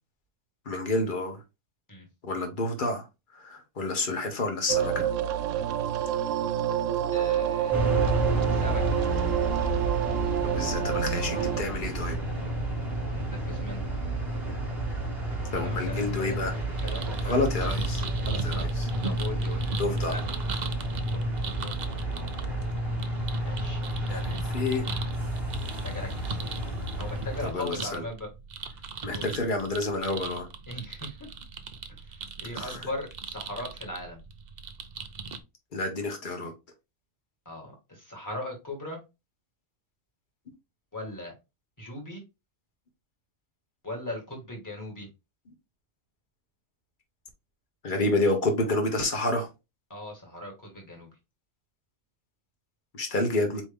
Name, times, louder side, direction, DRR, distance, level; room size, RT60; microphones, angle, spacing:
voice 1, 0.6-1.4 2.2-3.0 3.3-5.1 10.4-12.2 15.5-16.5 17.2-18.9 19.8-20.1 24.1-24.9 27.4-28.0 29.0-30.5 32.5-32.8 35.7-36.5 47.8-49.5 52.9-53.6, left 2 dB, 40° left, 1.3 m, -29 dB
sound 1, 4.7-11.6, right 10 dB, 85° right, 0.9 m, -28 dB
voice 2, 7.1-8.1 8.5-8.8 13.1-13.9 15.6-16.4 16.8-17.4 18.5-18.7 19.0-20.2 21.1-22.3 23.4-23.8 25.8-26.5 27.0-28.3 29.0-29.5 30.7-31.3 32.0-34.2 37.4-39.0 40.9-41.3 41.8-42.2 43.8-45.1 49.9-51.1, left 1 dB, 15° left, 1.7 m, -39 dB
sound 2, 7.7-27.5, right 1 dB, ahead, 1.7 m, -30 dB
sound 3, 16.8-35.4, right 5 dB, 50° right, 0.6 m, -40 dB
4.5 x 3.1 x 3.5 m
omnidirectional pair, 1.3 m